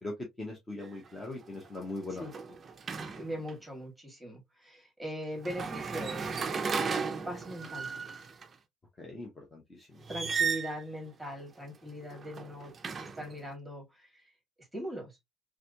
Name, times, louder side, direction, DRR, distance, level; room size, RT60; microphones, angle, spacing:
voice 1, 0.0-2.3 9.0-10.1, left 2 dB, 15° left, 0.9 m, -40 dB
sound 1, 0.8-1.1 1.4-3.5 5.4-8.5 10.0-10.8 12.0-13.4, right 5 dB, 25° right, 0.5 m, -35 dB
voice 2, 3.1-6.4 7.3-7.9 10.1-12.7 13.0-14.2 14.7-15.1, equal, ahead, 1.8 m, -40 dB
3.5 x 3.3 x 2.7 m
cardioid pair, 170°, 0 cm